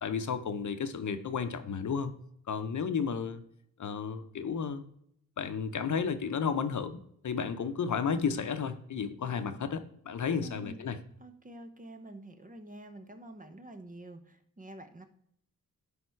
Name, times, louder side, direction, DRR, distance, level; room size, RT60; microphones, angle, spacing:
voice 1, 0.0-2.1 2.5-3.4 3.8-4.9 5.4-11.0, left 6 dB, 60° left, 10 dB, 0.7 m, -33 dB
voice 2, 10.4-10.8 11.2-15.0, right 1 dB, 25° right, 8 dB, 0.8 m, -47 dB
10.5 x 3.6 x 4.5 m, 0.70 s
cardioid pair, 80°, 35 cm